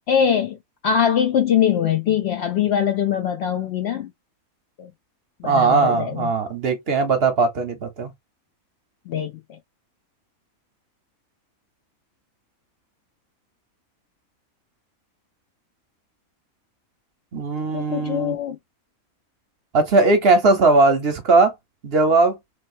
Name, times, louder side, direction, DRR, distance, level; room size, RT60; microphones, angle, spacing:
voice 1, 0.1-0.6 0.8-4.1 4.8-4.9 5.4-6.3 9.1-9.6 17.7-18.6, left 8 dB, 65° left, 0.7 m, -22 dB
voice 2, 5.4-8.1 17.3-18.4 19.7-21.5 21.8-22.4, right 3 dB, 55° right, 0.8 m, -18 dB
3.2 x 2.8 x 2.4 m
omnidirectional pair, 1.5 m